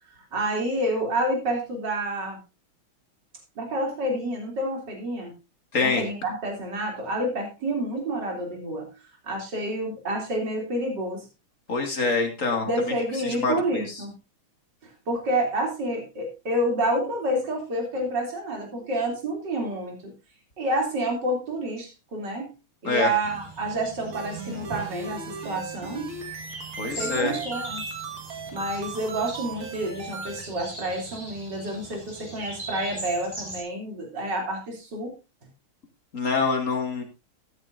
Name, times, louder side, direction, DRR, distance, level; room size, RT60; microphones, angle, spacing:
voice 1, 0.3-2.4 3.6-5.3 5.8-8.9 9.2-11.3 12.6-14.1 14.8-20.1 20.6-22.5 22.8-26.1 27.0-27.8 28.5-35.1, right 1 dB, 50° right, 1 dB, 3.8 m, -29 dB
voice 2, 5.7-6.0 11.7-12.9 13.2-14.0 22.8-23.1 26.8-27.4 36.1-37.0, left 4 dB, 35° left, 3 dB, 2.5 m, -25 dB
sound 1, 23.2-33.6, right 1 dB, 10° right, 5.1 m, -41 dB
sound 2, 24.1-30.4, right 4 dB, 70° right, 2.7 m, -37 dB
14.0 x 10.5 x 2.6 m, 0.27 s
omnidirectional pair, 2.4 m